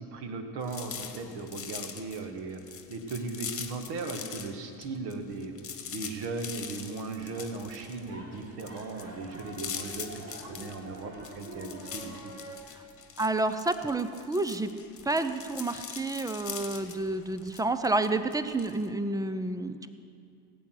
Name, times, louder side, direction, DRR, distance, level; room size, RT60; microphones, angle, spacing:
voice 1, 0.0-2.6 2.9-5.5 5.9-12.3, right 3 dB, 50° right, 6 dB, 1.7 m, -37 dB
sound 1, 0.6-4.5 4.8-18.9, left 7 dB, 25° left, 1.4 m, -42 dB
sound 2, 7.3-12.6, right 1 dB, 30° right, 2.7 m, -46 dB
voice 2, 13.2-14.7 15.0-19.9, right 2 dB, 10° right, 11 dB, 0.5 m, -29 dB
17.5 x 8.4 x 6.4 m, 2.5 s
figure-of-eight pair, 65°, 49 cm